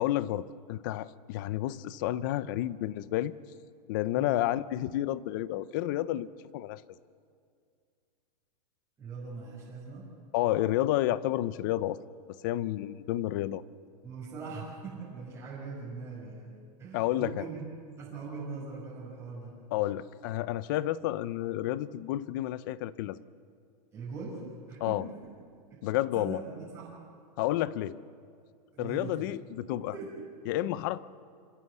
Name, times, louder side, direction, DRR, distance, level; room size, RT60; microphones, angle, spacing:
voice 1, 0.0-3.3 3.9-6.8 10.3-12.0 12.4-13.6 16.9-17.4 19.7-23.2 24.8-25.0 25.8-26.4 27.4-28.0 28.8-29.9 30.5-31.0, left 14 dB, 30° left, 18 dB, 0.5 m, -30 dB
voice 2, 9.0-10.1 14.0-17.7 18.0-19.6 23.9-24.4 24.7-25.3 25.7-25.8 26.1-26.9 28.7-29.3 29.9-30.4, right 4 dB, 15° right, -6 dB, 5.6 m, -41 dB
26.5 x 16.0 x 8.0 m, 2.2 s
supercardioid pair, 170°, 21 cm